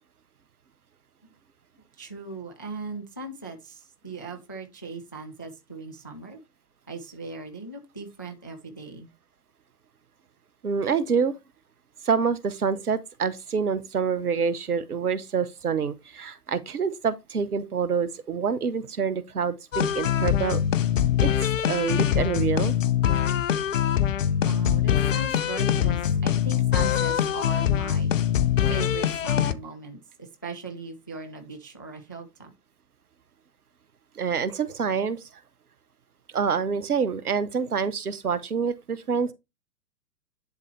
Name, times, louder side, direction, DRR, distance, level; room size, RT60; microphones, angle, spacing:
voice 1, 2.0-6.4 6.9-9.1 24.4-28.1 28.7-32.5, right 3 dB, 15° left, 0.3 m, -39 dB
voice 2, 10.6-11.3 12.0-20.6 21.2-21.3 21.6-22.7 34.2-35.2 36.3-39.3, right 6 dB, 65° right, 1.2 m, -26 dB
sound 1, 19.7-29.5, left 10 dB, 55° left, 0.8 m, -23 dB
10.5 x 4.1 x 3.3 m
figure-of-eight pair, 115°, 47 cm